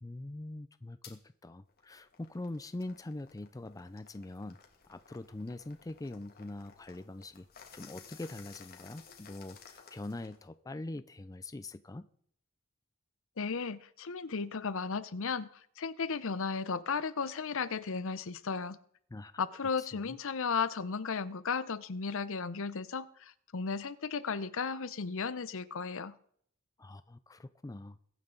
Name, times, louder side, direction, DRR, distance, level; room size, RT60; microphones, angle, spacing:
voice 1, 0.0-4.6 4.9-7.5 7.7-12.1 19.1-19.3 19.8-20.2 26.8-28.0, left 2 dB, 15° left, 0.4 m, -43 dB
sound 1, 1.0-1.2 1.7-10.5, left 6 dB, 45° left, 2.1 m, -56 dB
voice 2, 13.4-15.5 15.8-18.8 19.4-26.2, left 5 dB, 65° left, 0.7 m, -35 dB
22.0 x 9.2 x 3.9 m
head